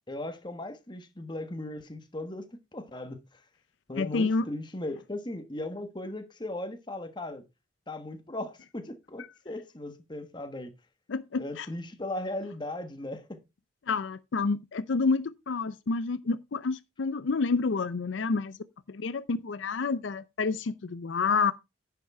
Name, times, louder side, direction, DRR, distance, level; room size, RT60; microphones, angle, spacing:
voice 1, 0.1-3.2 3.9-7.4 7.9-10.7 11.4-13.4, left 1 dB, 25° left, 1.3 m, -37 dB
voice 2, 4.0-4.5 11.1-11.7 13.9-18.6 18.9-21.5, left 4 dB, 80° left, 0.5 m, -29 dB
10.0 x 5.9 x 4.3 m
head